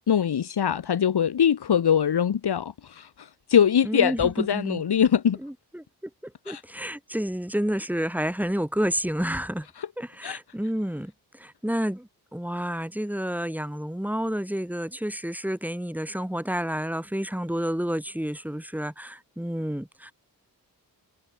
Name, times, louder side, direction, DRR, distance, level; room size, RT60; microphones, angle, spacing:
voice 1, 0.1-5.4 6.5-6.6 9.8-9.9 10.2-10.4, left 8 dB, 80° left, 1.8 m, -23 dB
voice 2, 3.8-4.8 5.4-9.7 10.0-20.1, equal, 5° right, 5.1 m, -30 dB
cardioid pair, 70°, 39 cm